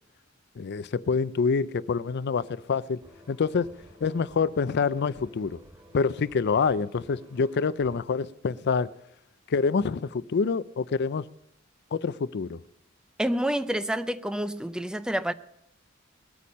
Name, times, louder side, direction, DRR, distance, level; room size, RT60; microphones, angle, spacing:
voice 1, 0.6-3.0 3.3-3.7 4.0-5.6 5.9-8.9 9.5-11.3 11.9-12.6, left 5 dB, 55° left, 0.4 m, -26 dB
sound 1, 3.0-8.0, equal, 25° right, 4.2 m, -53 dB
voice 2, 13.2-15.3, equal, 5° right, 0.4 m, -28 dB
20.5 x 8.4 x 5.3 m
head